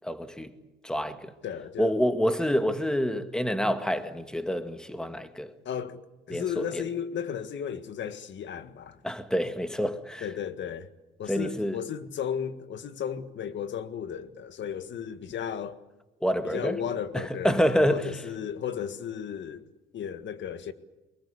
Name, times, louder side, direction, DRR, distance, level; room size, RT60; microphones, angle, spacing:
voice 1, 0.0-0.5 0.8-1.3 1.8-5.5 6.3-6.8 9.0-10.3 11.3-11.8 16.2-16.8 17.1-18.1, equal, 5° left, 1.9 m, -27 dB
voice 2, 1.4-1.9 5.7-6.0 6.3-9.0 10.2-10.9 11.2-15.8 16.4-19.6 19.9-20.7, left 8 dB, 65° left, 1.8 m, -34 dB
23.5 x 21.5 x 8.3 m
cardioid pair, 90°, 20 cm